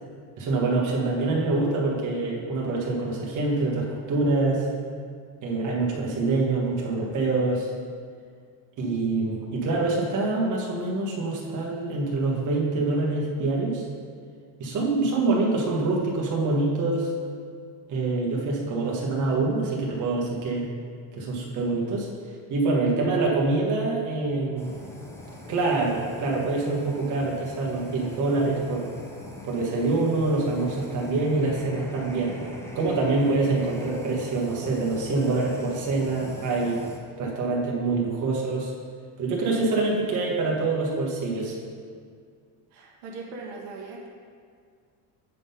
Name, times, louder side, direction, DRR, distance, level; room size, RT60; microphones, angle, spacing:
voice 1, 0.4-4.7 5.4-7.7 8.8-13.8 14.6-17.1 17.9-20.7 21.1-22.1 22.5-24.7 25.5-28.9 29.4-32.3 32.7-36.8 37.2-38.7 39.2-41.6, right 3 dB, 40° right, -3 dB, 1.4 m, -25 dB
Fire, 24.6-37.0, left 1 dB, 5° left, 0.6 m, -42 dB
voice 2, 42.7-44.1, right 3 dB, 80° right, -2 dB, 1.3 m, -39 dB
8.2 x 3.8 x 5.5 m, 2.1 s
cardioid pair, 140°, 44 cm